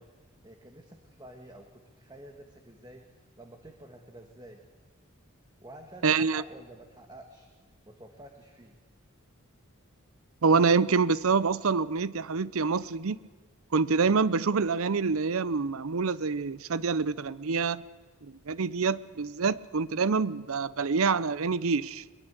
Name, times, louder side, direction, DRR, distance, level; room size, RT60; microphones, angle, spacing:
voice 1, 0.0-3.0 3.4-4.6 5.6-7.5 7.8-8.7, right 1 dB, 20° right, 1.5 m, -50 dB
voice 2, 6.0-6.4 10.4-13.2 13.7-17.8 18.5-22.0, right 5 dB, 75° right, 0.6 m, -26 dB
21.5 x 21.5 x 8.2 m
head